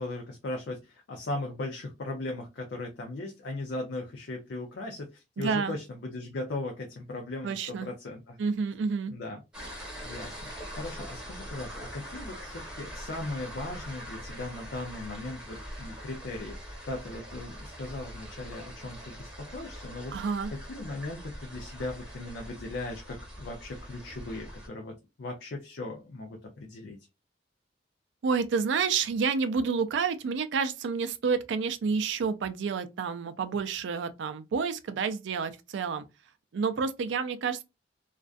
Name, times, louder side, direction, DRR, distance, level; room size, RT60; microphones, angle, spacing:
voice 1, 0.0-8.4 9.1-9.4 10.0-20.2 20.5-27.0, left 2 dB, 70° left, 0.5 m, -38 dB
voice 2, 5.4-5.8 7.4-7.9 8.4-9.1 20.1-20.5 28.2-36.1 36.5-37.6, right 5 dB, 80° right, 0.4 m, -29 dB
sound 1, 9.5-24.7, equal, 5° right, 0.9 m, -43 dB
2.5 x 2.2 x 2.3 m
head